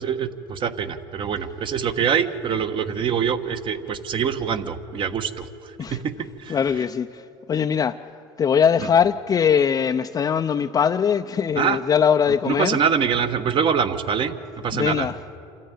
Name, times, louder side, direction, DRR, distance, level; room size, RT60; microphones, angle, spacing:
voice 1, 0.0-6.6 8.8-8.9 11.5-11.8 12.4-15.1, right 7 dB, 45° right, 9 dB, 1.3 m, -24 dB
voice 2, 6.5-8.0 8.4-12.8 14.7-15.1, left 7 dB, 30° left, 5 dB, 0.5 m, -21 dB
27.0 x 13.5 x 9.1 m, 2.9 s
supercardioid pair, 95°, 12 cm